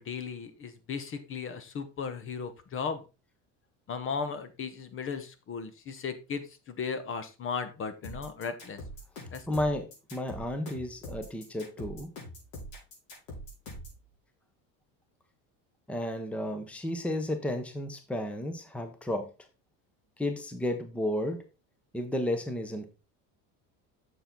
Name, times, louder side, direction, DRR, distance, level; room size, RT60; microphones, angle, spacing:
voice 1, 0.0-3.0 3.9-8.8 9.3-9.5, left 5 dB, 35° left, 11 dB, 1.1 m, -36 dB
sound 1, 8.0-14.0, equal, 75° left, 5.1 m, -43 dB
voice 2, 9.5-12.1 15.9-19.3 20.2-21.4 21.9-22.9, left 1 dB, 5° left, 7 dB, 0.9 m, -32 dB
7.0 x 6.9 x 3.9 m, 0.30 s
cardioid pair, 140°, 37 cm